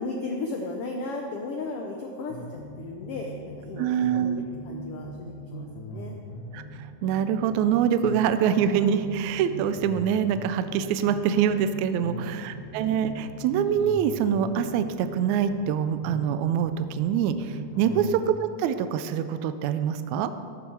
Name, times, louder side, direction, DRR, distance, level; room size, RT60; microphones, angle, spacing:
voice 1, 0.0-6.1 12.2-12.4 17.8-18.0, left 3 dB, 90° left, 2 dB, 1.2 m, -35 dB
sound 1, 2.3-3.8 4.0-7.7 8.0-11.7 12.0-15.7 16.0-18.1, equal, 70° left, 2.6 m, -40 dB
voice 2, 3.8-4.5 6.5-20.3, right 8 dB, 80° right, 11 dB, 1.8 m, -25 dB
13.5 x 7.4 x 4.6 m, 2.2 s
omnidirectional pair, 3.6 m